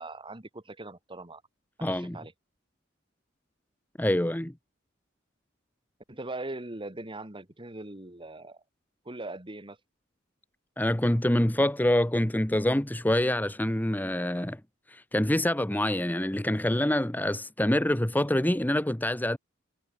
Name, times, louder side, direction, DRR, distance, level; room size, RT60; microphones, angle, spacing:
voice 1, 0.0-1.4 1.8-2.3 6.1-8.6 9.0-9.8, right 2 dB, 25° right, 2.4 m, -40 dB
voice 2, 1.8-2.2 4.0-4.5 10.8-14.6 14.9-19.4, left 1 dB, 10° left, 0.9 m, -26 dB
head